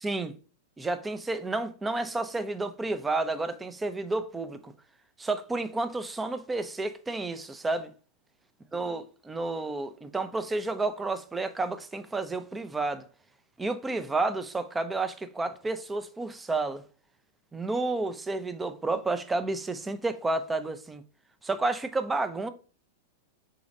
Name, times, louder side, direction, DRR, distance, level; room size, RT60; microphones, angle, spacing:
voice 1, 0.0-0.4 0.8-4.7 5.2-7.9 8.7-13.1 13.6-16.8 17.5-21.0 21.4-22.5, right 3 dB, 15° right, 0.5 m, -31 dB
5.0 x 4.0 x 2.5 m
hypercardioid pair, 100°, 0 cm